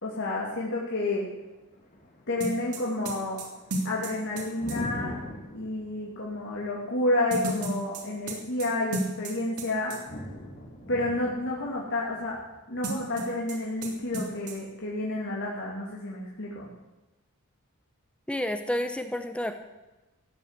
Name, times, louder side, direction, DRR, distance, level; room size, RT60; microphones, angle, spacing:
voice 1, 0.0-1.3 2.3-3.4 3.8-5.1 5.5-10.0 10.9-12.4 12.7-16.7, left 2 dB, 55° left, -4 dB, 2.7 m, -30 dB
Thunder, 1.2-15.2, left 1 dB, 35° left, 2.7 m, -44 dB
sound 1, 2.4-4.8 7.3-9.7 9.9-10.0 12.8-13.6 13.8-13.9 14.1-14.5, right 2 dB, 85° right, 3.2 m, -33 dB
voice 2, 18.3-19.6, left 1 dB, 5° left, 7 dB, 0.9 m, -30 dB
15.5 x 9.2 x 8.2 m, 1.1 s
head